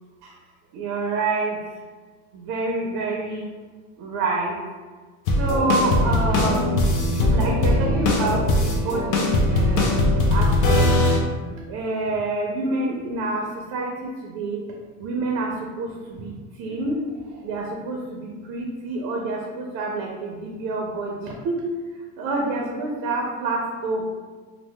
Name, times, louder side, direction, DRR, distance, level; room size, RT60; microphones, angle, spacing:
voice 1, 0.7-1.6 2.3-3.6 4.0-4.6 5.4-6.8 7.3-9.9 10.3-14.6 15.0-21.6 21.9-24.0, right 2 dB, 50° right, -1 dB, 0.5 m, -27 dB
sound 1, 5.3-11.2, left 2 dB, 50° left, 0.6 m, -20 dB
2.7 x 2.1 x 3.3 m, 1.4 s
supercardioid pair, 130°, 39 cm